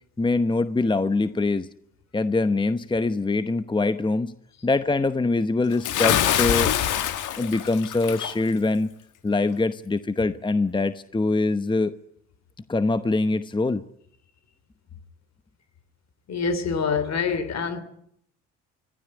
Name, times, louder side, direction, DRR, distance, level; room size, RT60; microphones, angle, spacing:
voice 1, 0.2-1.7 2.1-4.3 4.6-6.7 7.4-8.9 9.2-11.9 12.7-13.8, left 3 dB, 15° left, 0.9 m, -23 dB
Bathtub (filling or washing) / Splash splatter, 5.8-8.3, left 10 dB, 80° left, 1.6 m, -24 dB
voice 2, 16.3-17.8, left 5 dB, 60° left, 3.2 m, -25 dB
25.5 x 15.5 x 9.6 m
cardioid pair, 90°, 30 cm